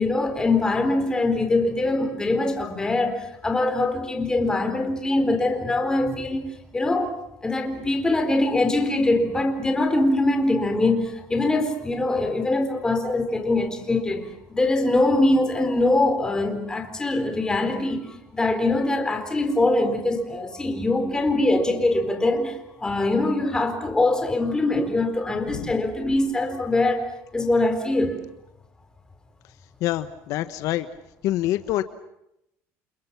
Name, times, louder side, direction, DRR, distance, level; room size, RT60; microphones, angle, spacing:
voice 1, 0.0-7.1 7.4-27.1 27.3-28.2, left 2 dB, 10° left, 4.1 m, -23 dB
voice 2, 29.8-30.9 31.2-31.8, left 14 dB, 65° left, 1.3 m, -26 dB
30.0 x 28.0 x 6.0 m
cardioid pair, 150°, 6 cm